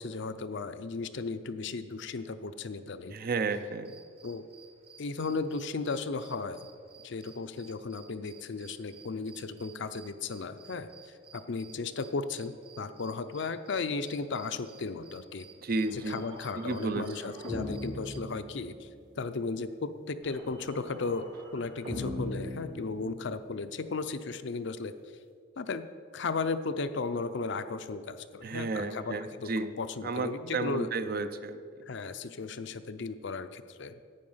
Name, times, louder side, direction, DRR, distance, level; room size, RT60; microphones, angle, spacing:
voice 1, 0.0-3.2 4.2-4.4 5.0-6.7 7.0-10.9 11.3-15.5 15.9-18.9 19.2-21.2 21.5-24.9 25.6-25.8 26.1-29.5 29.8-30.9 31.9-34.0, left 4 dB, 60° left, 10 dB, 0.5 m, -35 dB
voice 2, 3.1-4.0 15.6-16.2 16.5-17.3 28.4-29.7 30.0-31.6, right 3 dB, 45° right, 11 dB, 0.5 m, -32 dB
sound 1, 3.7-18.2, right 7 dB, 30° right, 0.9 m, -56 dB
sound 2, 15.9-19.1 20.2-23.5, left 1 dB, 65° right, 2.2 m, -41 dB
11.5 x 8.5 x 5.6 m, 2.3 s
head